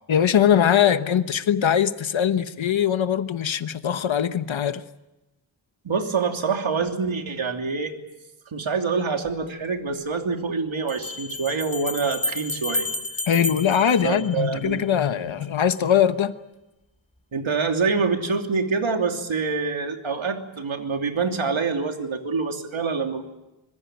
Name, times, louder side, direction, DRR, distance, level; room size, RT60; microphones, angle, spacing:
voice 1, 0.1-4.8 13.3-16.3, left 9 dB, 70° left, 1.2 m, -21 dB
voice 2, 5.8-7.9 8.5-12.9 14.0-14.9 17.3-23.2, right 4 dB, 75° right, 3.1 m, -26 dB
sound 1, 9.3-9.4 10.9-14.8, left 2 dB, 15° left, 2.7 m, -31 dB
25.5 x 21.0 x 9.1 m
wide cardioid pair, 75°, 48 cm